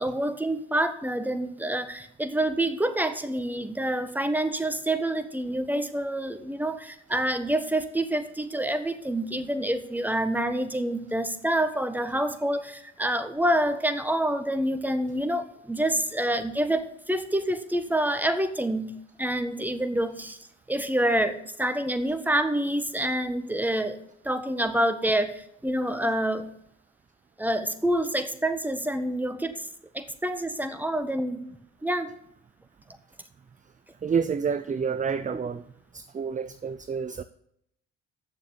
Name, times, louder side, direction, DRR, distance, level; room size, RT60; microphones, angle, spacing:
voice 1, 0.0-18.9 19.2-20.4 20.7-26.5 27.4-29.7 29.9-31.5 31.8-32.1, right 1 dB, 5° right, 1.4 m, -27 dB
voice 2, 34.0-35.6 35.9-37.2, right 6 dB, 25° right, 0.6 m, -28 dB
8.7 x 7.0 x 8.6 m
hypercardioid pair, 55°, 34 cm